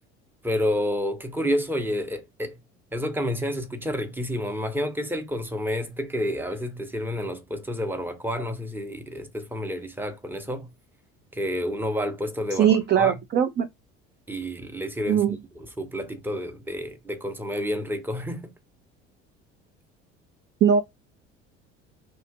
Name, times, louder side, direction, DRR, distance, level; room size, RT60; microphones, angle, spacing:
voice 1, 0.4-2.6 2.9-10.7 11.3-13.1 14.3-18.5, equal, 5° right, 0.8 m, -29 dB
voice 2, 12.5-13.7 15.1-15.4 20.6-20.8, right 8 dB, 30° right, 0.4 m, -20 dB
2.9 x 2.4 x 3.4 m
hypercardioid pair, 60°, 34 cm